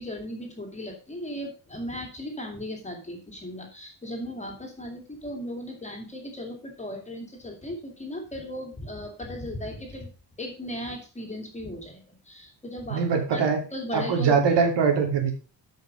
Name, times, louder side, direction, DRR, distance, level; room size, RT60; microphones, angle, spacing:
voice 1, 0.0-10.1 10.4-13.0 13.3-13.4 13.7-14.4, left 1 dB, 15° left, 2 dB, 2.5 m, -37 dB
voice 2, 12.9-13.6 13.9-15.3, right 5 dB, 65° right, 4 dB, 2.9 m, -22 dB
13.0 x 5.7 x 5.1 m, 0.34 s
cardioid pair, 175°, 44 cm